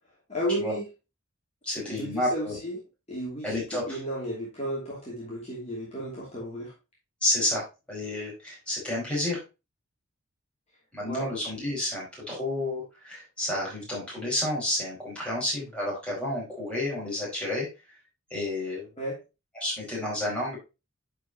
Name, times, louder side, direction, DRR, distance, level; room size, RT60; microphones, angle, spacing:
voice 1, 0.3-0.8 1.9-2.8 3.1-6.7 11.0-11.3 19.0-19.2, equal, 30° left, -5 dB, 2.7 m, -33 dB
voice 2, 1.6-2.6 3.4-4.0 7.2-9.4 10.9-17.7 18.3-18.9 19.5-20.6, left 1 dB, 5° left, -5 dB, 4.8 m, -30 dB
10.5 x 5.2 x 2.9 m, 0.27 s
head